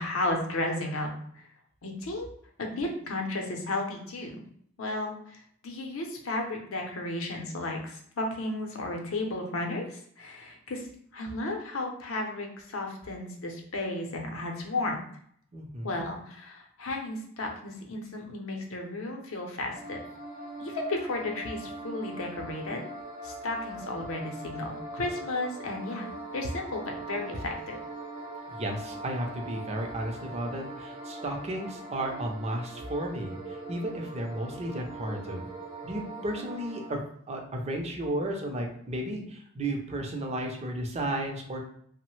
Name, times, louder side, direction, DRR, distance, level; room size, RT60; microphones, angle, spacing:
voice 1, 0.0-1.4 1.8-2.3 2.6-4.4 4.8-10.8 11.1-12.5 12.7-15.0 15.8-20.0 20.6-22.8 23.2-27.8, left 2 dB, 75° left, 2 dB, 0.6 m, -33 dB
voice 2, 15.5-16.0 28.5-35.5 35.8-37.0 37.3-41.6, right 1 dB, 30° right, 2 dB, 0.5 m, -33 dB
sound 1, 19.7-36.9, right 2 dB, 55° right, 0.8 m, -41 dB
3.0 x 2.0 x 3.0 m, 0.65 s
head